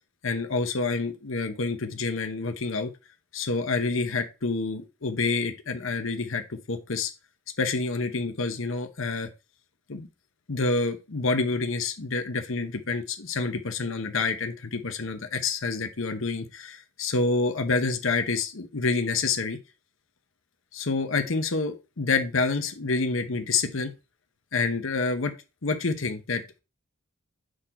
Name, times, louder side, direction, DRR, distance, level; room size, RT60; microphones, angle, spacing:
voice 1, 0.2-2.9 3.3-7.1 7.6-9.3 9.9-10.1 10.5-19.6 20.7-23.9 24.5-25.3 25.6-26.4, left 3 dB, 70° left, 6 dB, 0.9 m, -28 dB
6.4 x 3.9 x 4.3 m, 0.28 s
head